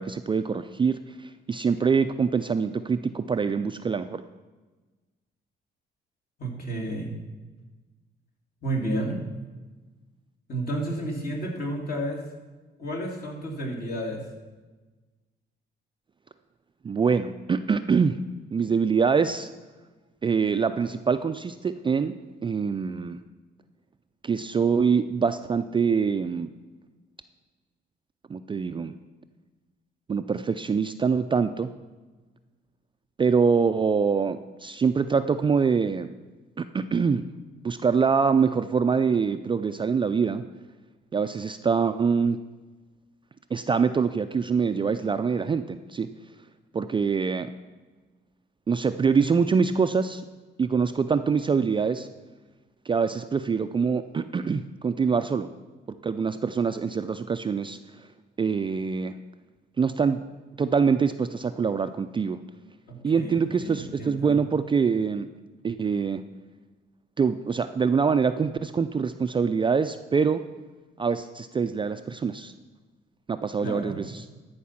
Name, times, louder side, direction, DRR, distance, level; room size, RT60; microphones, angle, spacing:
voice 1, 0.0-4.2 16.8-18.2 18.5-19.5 20.2-22.2 22.4-23.2 24.2-26.5 28.3-29.0 30.1-31.7 33.2-36.1 36.6-37.2 37.6-40.4 41.1-42.4 43.5-46.1 46.7-47.5 48.7-50.2 50.6-52.1 52.9-55.5 56.0-58.1 58.4-59.2 59.8-60.2 60.6-62.4 63.0-65.3 65.6-66.2 67.2-70.4 71.0-72.5 73.3-74.2, right 5 dB, 25° right, 10 dB, 0.3 m, -24 dB
voice 2, 6.4-7.1 8.6-9.2 10.5-12.2 12.8-14.2 62.9-64.4 73.6-74.0, right 1 dB, 50° left, -1 dB, 2.7 m, -31 dB
13.0 x 4.7 x 5.8 m, 1.2 s
cardioid pair, 90°, 20 cm